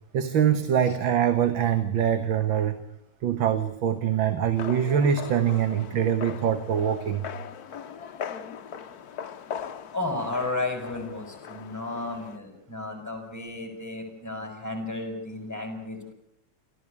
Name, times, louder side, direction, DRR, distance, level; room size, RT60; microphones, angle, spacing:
voice 1, 0.1-2.8 3.2-7.3, right 9 dB, 85° right, 9 dB, 2.1 m, -24 dB
sound 1, 4.6-12.4, left 8 dB, 60° left, 1.4 m, -39 dB
voice 2, 9.9-16.1, left 2 dB, 10° left, 5 dB, 6.8 m, -33 dB
28.5 x 14.5 x 8.6 m, 0.79 s
omnidirectional pair, 2.1 m